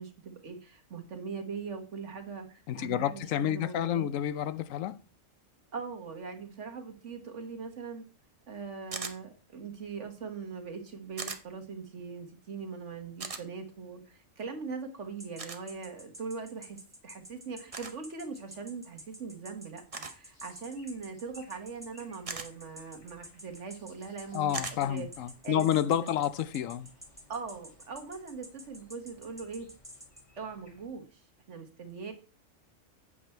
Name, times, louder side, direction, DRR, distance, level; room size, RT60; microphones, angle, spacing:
voice 1, 0.0-4.1 5.7-8.0 8.5-25.1 25.4-26.1 27.3-29.7 30.4-31.2 31.5-32.1, right 5 dB, 65° right, 1.8 m, -41 dB
voice 2, 2.7-5.0 24.3-26.9, left 10 dB, 85° left, 1.0 m, -29 dB
sound 1, 8.9-9.2 11.2-11.4 13.2-13.4 15.4-15.6 17.7-17.9 19.9-20.2 22.2-22.5 24.5-24.8, right 4 dB, 30° right, 0.8 m, -38 dB
sound 2, 15.2-30.2, equal, 5° right, 1.7 m, -49 dB
sound 3, 20.2-30.9, left 1 dB, 25° left, 4.4 m, -63 dB
8.4 x 7.3 x 4.4 m
omnidirectional pair, 1.3 m